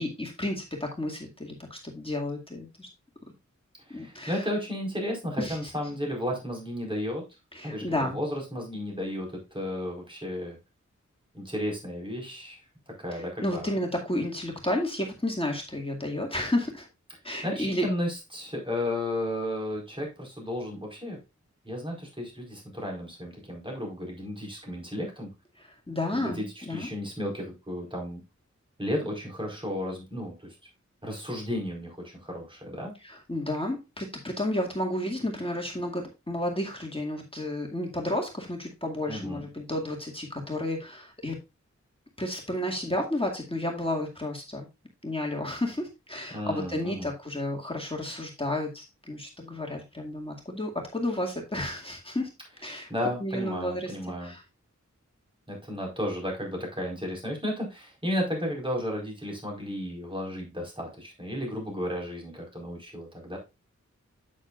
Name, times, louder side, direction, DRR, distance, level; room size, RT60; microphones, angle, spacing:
voice 1, 0.0-2.9 3.9-4.4 5.4-5.6 7.5-8.2 13.4-16.9 17.2-17.8 25.9-26.9 33.0-41.4 42.2-44.7 45.0-52.3 52.6-52.9 53.2-53.9 54.2-54.4, left 1 dB, 20° left, 0 dB, 2.1 m, -31 dB
voice 2, 3.9-7.2 7.6-7.9 8.1-10.6 11.3-12.6 12.9-13.7 17.4-21.2 21.6-25.3 26.1-28.2 28.8-30.5 31.0-32.9 39.1-39.4 46.3-47.1 52.9-54.3 55.5-63.4, left 1 dB, 15° right, -1 dB, 4.5 m, -33 dB
9.0 x 7.8 x 2.4 m, 0.25 s
wide cardioid pair, 55°, 29 cm